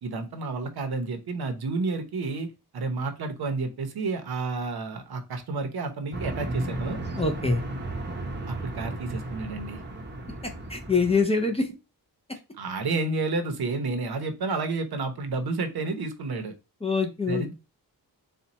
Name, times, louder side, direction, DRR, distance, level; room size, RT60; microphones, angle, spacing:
voice 1, 0.0-7.0 8.5-9.8 12.6-16.5 17.3-17.5, right 3 dB, 70° right, 6 dB, 0.8 m, -30 dB
sound 1, 6.1-11.2, right 2 dB, 30° right, 0.7 m, -34 dB
voice 2, 7.2-7.6 10.4-11.7 16.8-17.4, left 4 dB, 15° left, 2 dB, 0.5 m, -25 dB
4.3 x 2.3 x 3.9 m, 0.28 s
wide cardioid pair, 155°, 39 cm